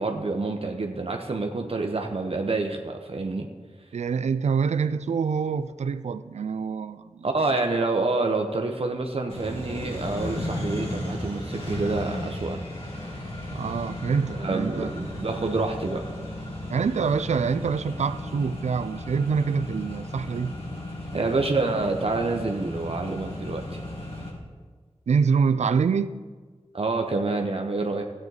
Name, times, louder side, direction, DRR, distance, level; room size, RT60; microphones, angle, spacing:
voice 1, 0.0-3.5 7.2-12.6 14.3-16.0 21.1-23.8 26.7-28.0, right 3 dB, 60° right, 3 dB, 0.9 m, -27 dB
voice 2, 3.9-7.6 13.5-14.9 16.7-20.5 25.1-26.2, right 5 dB, 85° right, 12 dB, 0.4 m, -26 dB
Accelerating revving vroom, 9.3-24.3, left 1 dB, 60° left, 3.6 m, -35 dB
13.5 x 8.9 x 4.0 m, 1.5 s
cardioid pair, 50°, 11 cm